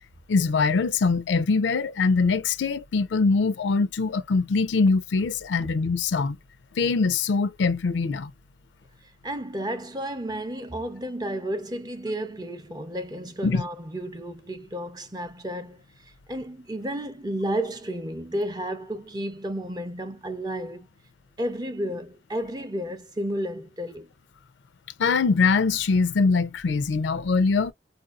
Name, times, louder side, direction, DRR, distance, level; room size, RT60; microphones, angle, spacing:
voice 1, 0.3-6.4 6.8-8.3 13.4-13.6 25.0-27.7, left 4 dB, 90° left, 0.4 m, -23 dB
voice 2, 9.2-15.8 16.3-20.9 21.4-24.1, right 1 dB, 20° right, 0.5 m, -32 dB
4.5 x 2.5 x 2.3 m
head